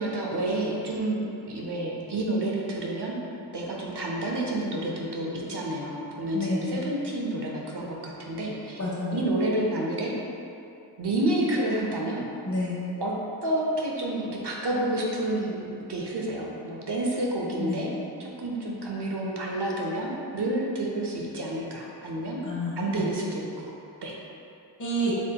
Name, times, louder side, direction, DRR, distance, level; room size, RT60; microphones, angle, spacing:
voice 1, 0.0-3.2 3.5-8.8 9.1-10.1 11.0-12.3 13.0-13.1 13.4-22.4 22.8-23.7 24.0-24.2, right 1 dB, 70° right, -2 dB, 0.7 m, -29 dB
voice 2, 6.3-6.7 8.8-9.2 12.4-12.8 17.6-17.8 22.4-23.1 24.8-25.1, equal, 45° left, -6 dB, 1.1 m, -29 dB
7.0 x 2.8 x 2.2 m, 2.7 s
wide cardioid pair, 45°, 43 cm